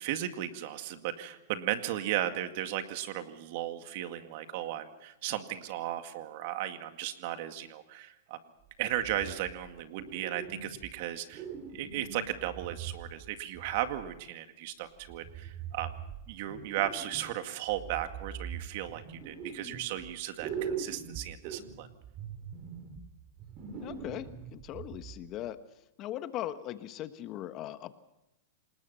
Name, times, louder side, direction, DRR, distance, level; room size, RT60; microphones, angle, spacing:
voice 1, 0.0-8.4 8.8-11.4 11.7-15.9 16.3-21.9, right 12 dB, 55° right, 8 dB, 2.1 m, -35 dB
sound 1, 8.9-9.7 10.0-11.0 11.3-14.2 15.0-17.4 17.7-20.1 20.4-25.4, right 7 dB, 35° right, 2.9 m, -42 dB
voice 2, 23.8-25.6 26.0-28.0, left 12 dB, 35° left, 11 dB, 1.2 m, -39 dB
27.5 x 20.0 x 5.7 m, 0.89 s
hypercardioid pair, 135°, 0 cm